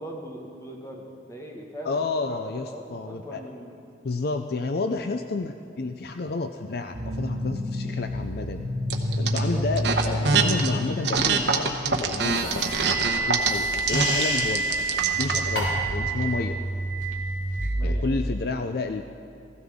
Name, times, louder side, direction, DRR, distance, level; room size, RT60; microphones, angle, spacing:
voice 1, 0.0-3.8 9.3-9.7 17.8-18.0, equal, 15° left, 0 dB, 1.5 m, -40 dB
voice 2, 1.8-3.4 4.0-8.7 9.2-16.6 17.8-19.0, left 3 dB, 55° left, 7 dB, 0.5 m, -30 dB
sound 1, 6.9-18.0, right 1 dB, 45° right, 1.2 m, -29 dB
sound 2, 8.9-9.4 9.8-10.7 11.0-15.5, right 5 dB, 75° right, 1.0 m, -24 dB
sound 3, 12.2-16.0, left 1 dB, 75° left, 4.1 m, -33 dB
16.5 x 15.5 x 3.6 m, 2.6 s
head